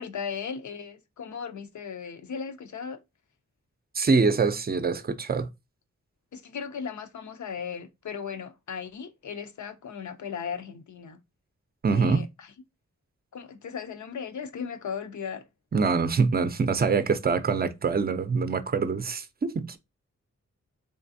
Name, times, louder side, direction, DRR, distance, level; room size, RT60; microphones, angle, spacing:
voice 1, 0.0-3.0 6.3-11.2 11.9-12.5 13.3-15.4, left 6 dB, 80° left, 0.6 m, -37 dB
voice 2, 3.9-5.5 11.8-12.2 15.7-19.8, right 4 dB, 35° right, 0.5 m, -24 dB
3.7 x 3.3 x 2.6 m
wide cardioid pair, 120°, 29 cm